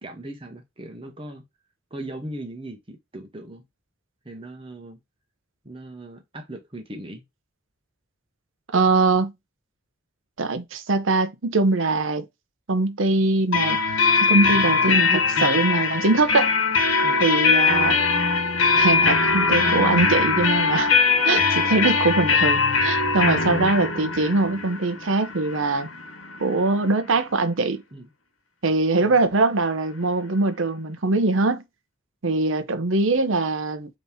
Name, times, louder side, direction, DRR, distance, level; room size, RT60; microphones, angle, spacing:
voice 1, 0.0-1.4 1.9-3.6 4.2-5.0 5.6-7.2 14.9-15.7 17.0-17.2 27.9-28.1 29.0-29.2, right 1 dB, 25° right, 1.1 m, -38 dB
voice 2, 8.7-9.3 10.4-12.2 12.7-13.8 14.2-15.1 15.4-16.5 17.2-18.0 18.7-20.9 21.2-25.9 26.4-27.8 28.6-31.6 32.2-33.9, right 3 dB, 85° right, 0.8 m, -22 dB
sound 1, 13.5-27.1, left 4 dB, 85° left, 1.1 m, -21 dB
5.5 x 3.1 x 2.7 m
head